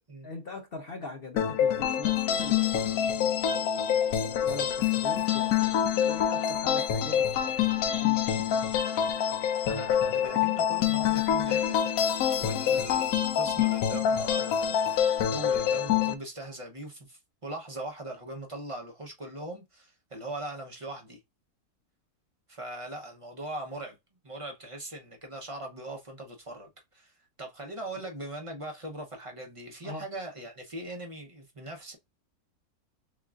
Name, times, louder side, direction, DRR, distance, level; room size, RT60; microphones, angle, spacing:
voice 1, 0.2-3.2 3.6-7.3 7.6-8.5 12.6-12.8 29.8-30.0, left 2 dB, 50° left, 0.7 m, -42 dB
sound 1, 1.4-16.1, left 9 dB, 75° left, 1.0 m, -26 dB
voice 2, 9.6-11.8 12.4-21.2 22.5-24.0 24.2-32.0, right 1 dB, 30° right, 0.6 m, -40 dB
6.4 x 2.4 x 2.4 m
omnidirectional pair, 1.6 m